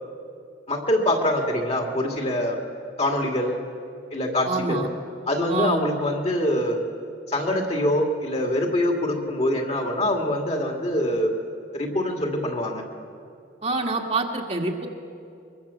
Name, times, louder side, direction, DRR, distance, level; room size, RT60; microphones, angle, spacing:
voice 1, 0.7-2.6 3.0-3.6 4.1-4.9 5.3-6.8 7.3-11.3 11.7-12.8, left 1 dB, 35° left, 2 dB, 2.5 m, -24 dB
voice 2, 4.5-4.9 5.5-5.9 13.6-14.9, right 3 dB, 35° right, 1 dB, 1.9 m, -26 dB
23.0 x 23.0 x 7.2 m, 2.4 s
head